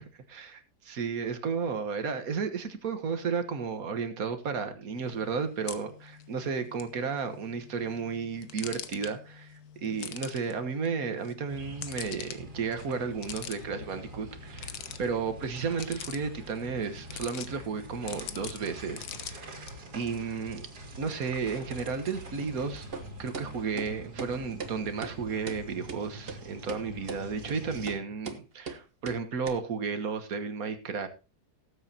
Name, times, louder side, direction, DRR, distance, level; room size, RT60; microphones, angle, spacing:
voice 1, 0.0-19.7 19.9-20.7 21.0-22.9 23.2-31.1, right 5 dB, 65° right, 8 dB, 1.7 m, -33 dB
sound 1, 5.0-19.7, left 9 dB, 75° left, 1.4 m, -45 dB
sound 2, 11.5-28.0, right 1 dB, 80° right, 2.9 m, -45 dB
sound 3, 22.9-23.1 23.3-23.5 23.8-23.9 24.2-24.3 24.6-24.7 25.0-25.1 25.5-25.6 25.9-26.0 26.3-26.4 26.7-26.8 27.1-27.2 27.5-27.6 27.9-28.0 28.2-28.4 28.7-28.8 29.1-29.2 29.5-29.6, right 4 dB, 40° right, 1.3 m, -38 dB
19.0 x 8.0 x 2.8 m, 0.30 s
omnidirectional pair, 1.7 m